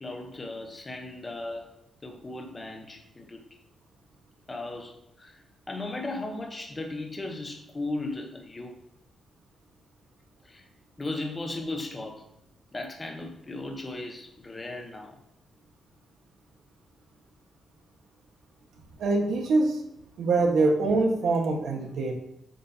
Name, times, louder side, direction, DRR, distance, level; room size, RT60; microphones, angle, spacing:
voice 1, 0.0-1.7 2.0-3.4 4.5-5.4 5.7-8.7 10.4-10.6 11.0-12.2 12.7-15.2, left 2 dB, 20° left, 3 dB, 0.9 m, -36 dB
voice 2, 19.0-19.8 20.2-22.1, right 3 dB, 75° right, 1 dB, 1.3 m, -24 dB
7.6 x 5.2 x 2.8 m, 0.81 s
wide cardioid pair, 155°, 0 cm